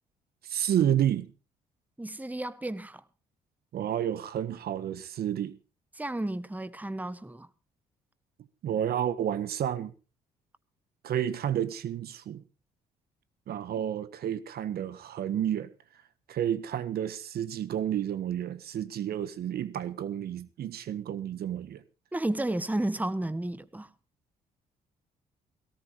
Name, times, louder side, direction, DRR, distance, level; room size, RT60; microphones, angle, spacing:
voice 1, 0.4-1.3 3.7-5.5 8.6-9.9 11.0-12.4 13.5-15.7 16.3-21.8, right 10 dB, 60° right, 1.5 m, -30 dB
voice 2, 2.0-3.0 5.9-7.5 22.1-23.9, right 1 dB, 10° right, 1.5 m, -32 dB
18.0 x 17.5 x 3.1 m
hypercardioid pair, 50°, 18 cm